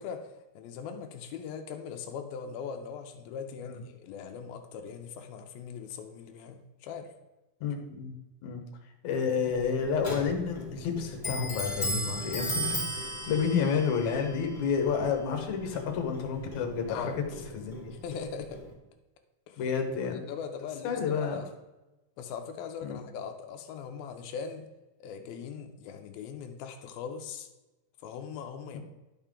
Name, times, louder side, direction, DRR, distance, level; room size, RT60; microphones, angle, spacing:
voice 1, 0.0-7.1 16.9-17.2 17.9-18.7 19.5-19.7 20.1-21.5 22.2-24.7 25.0-27.5 28.0-28.8, left 6 dB, 90° left, 5 dB, 2.6 m, -40 dB
voice 2, 7.6-8.1 8.4-8.6 9.0-17.1 17.5-17.9 19.6-20.2 20.8-21.5 22.8-23.0, left 6 dB, 65° left, 3 dB, 2.3 m, -30 dB
Clock, 9.4-18.7, equal, 15° left, 1.6 m, -37 dB
11.5 x 5.7 x 3.7 m, 1.1 s
omnidirectional pair, 4.1 m